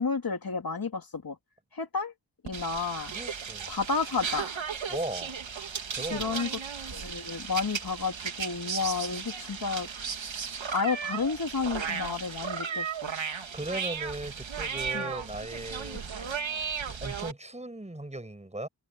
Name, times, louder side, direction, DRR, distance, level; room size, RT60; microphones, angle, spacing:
voice 1, 0.0-1.4 1.7-2.1 2.4-3.2 3.7-4.5 6.1-6.5 6.9-9.9 10.7-13.1 14.9-15.1, left 5 dB, 50° left, 2.9 m, -31 dB
sound 1, 2.5-17.3, right 6 dB, 75° right, 2.6 m, -35 dB
voice 2, 3.1-3.7 4.9-5.3 6.0-6.4 13.5-16.0 16.9-18.7, right 1 dB, 15° right, 6.6 m, -37 dB
wide cardioid pair, 140°, 47 cm